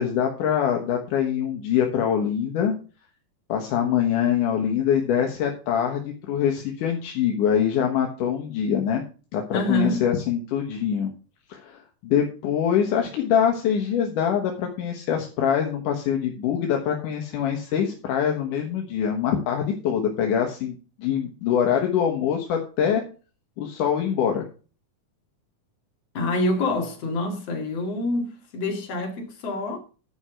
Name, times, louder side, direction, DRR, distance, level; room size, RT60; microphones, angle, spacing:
voice 1, 0.0-2.7 3.5-9.0 9.3-9.4 9.7-11.1 11.5-23.0 23.6-24.4, left 8 dB, 80° left, 2.8 m, -24 dB
voice 2, 9.5-10.0 26.1-29.8, left 1 dB, 50° left, 2.9 m, -26 dB
11.0 x 5.7 x 6.3 m
omnidirectional pair, 3.7 m